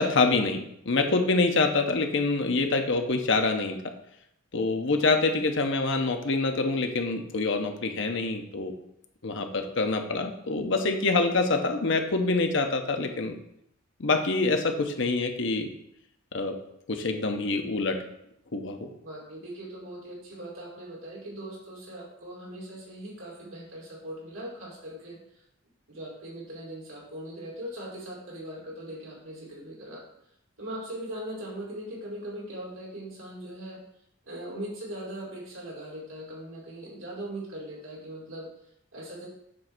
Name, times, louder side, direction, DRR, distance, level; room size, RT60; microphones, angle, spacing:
voice 1, 0.0-3.8 4.5-8.7 9.2-13.3 14.0-15.7 16.3-16.5 16.9-18.0 18.5-18.9, left 3 dB, 65° left, 5 dB, 0.9 m, -26 dB
voice 2, 4.9-5.4 19.0-25.2 25.9-30.0 30.6-33.8 34.3-38.5 38.9-39.3, right 1 dB, 85° right, -3 dB, 2.7 m, -40 dB
7.6 x 3.3 x 6.0 m, 0.75 s
head